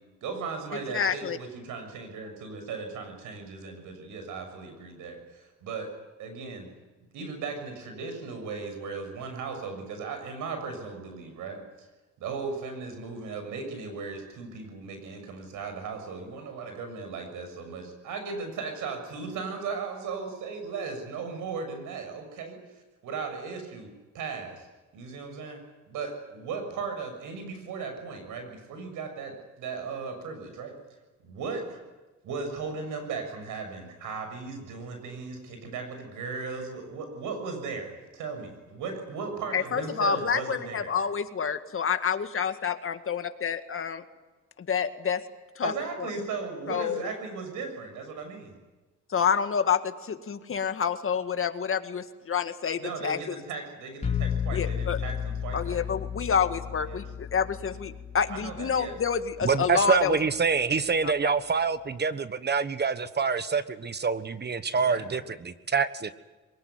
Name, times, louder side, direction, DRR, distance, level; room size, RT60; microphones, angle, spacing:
voice 1, 0.2-5.9 6.2-6.7 7.1-11.9 12.2-24.7 24.9-25.6 25.9-30.8 31.2-31.8 32.2-40.9 45.6-48.5 52.8-55.9 56.9-57.0 58.3-59.0 64.7-65.3, right 4 dB, 85° right, 6 dB, 6.8 m, -37 dB
voice 2, 0.9-1.4 39.5-44.0 44.7-45.2 45.6-45.7 46.7-47.0 49.1-53.2 54.5-55.0 55.5-60.2 61.0-61.3, left 7 dB, 45° left, 8 dB, 2.0 m, -28 dB
sound 1, 54.0-59.8, left 8 dB, 20° left, 4.5 m, -34 dB
voice 3, 59.4-66.2, right 5 dB, 35° right, 13 dB, 1.3 m, -26 dB
23.0 x 20.5 x 9.6 m, 1.2 s
cardioid pair, 90°, 30 cm